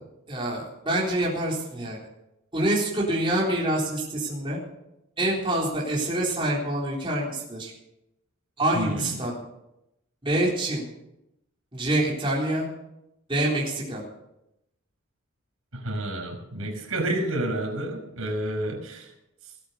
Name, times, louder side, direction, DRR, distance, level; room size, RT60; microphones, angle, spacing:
voice 1, 0.3-2.0 2.5-4.6 5.2-7.7 8.6-9.4 10.2-10.8 11.7-12.7 13.3-14.0, right 1 dB, 25° right, -5 dB, 3.9 m, -26 dB
voice 2, 8.7-9.1 15.7-19.1, right 1 dB, 85° right, 3 dB, 5.6 m, -30 dB
20.0 x 8.7 x 7.0 m, 0.87 s
head